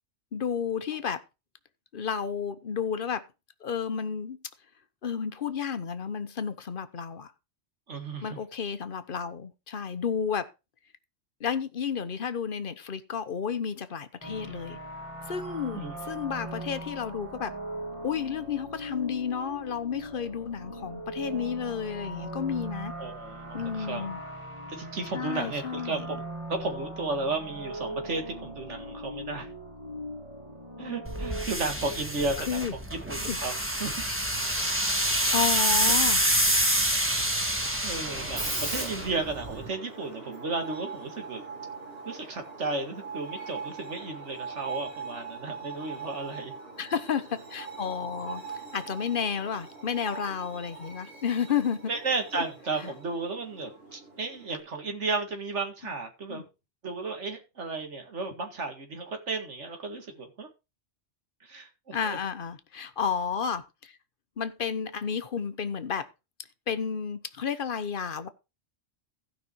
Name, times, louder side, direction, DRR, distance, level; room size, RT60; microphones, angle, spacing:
voice 1, 0.3-1.2 1.9-3.2 3.6-4.4 5.0-7.3 8.2-10.5 11.4-14.8 15.3-15.8 16.1-17.5 18.0-22.9 23.5-24.2 25.1-26.1 32.4-32.7 33.3-33.4 35.3-36.2 46.8-48.5 48.7-51.9 52.8-52.9 55.8-55.9 56.3-56.4 61.9-64.0 64.4-66.1 66.7-68.3, left 7 dB, 50° left, 1.0 m, -31 dB
voice 2, 7.9-8.3 15.7-16.0 23.0-24.1 24.7-26.2 26.5-29.5 30.8-32.7 33.1-33.5 33.8-33.9 37.8-41.4 42.1-46.5 51.9-56.4 56.8-60.5 61.4-62.2, right 3 dB, 85° right, 2.3 m, -33 dB
sound 1, 14.2-31.5, right 1 dB, 25° right, 2.2 m, -40 dB
sound 2, 31.1-39.7, right 1 dB, 10° right, 1.5 m, -27 dB
Screech, 38.0-54.6, right 3 dB, 55° right, 3.8 m, -41 dB
15.5 x 5.5 x 4.4 m
omnidirectional pair, 1.2 m